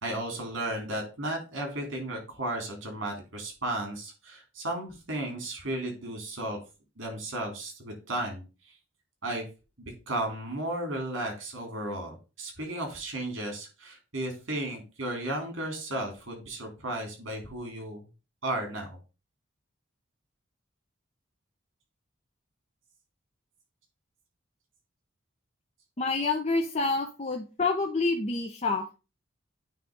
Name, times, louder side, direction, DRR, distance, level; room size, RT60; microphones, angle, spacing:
voice 1, 0.0-6.6 7.0-8.4 9.2-9.5 9.8-18.0 18.4-18.9, right 1 dB, 70° right, 3 dB, 3.4 m, -34 dB
voice 2, 26.0-28.9, left 3 dB, 30° left, 3 dB, 0.6 m, -28 dB
9.1 x 3.2 x 5.3 m, 0.30 s
head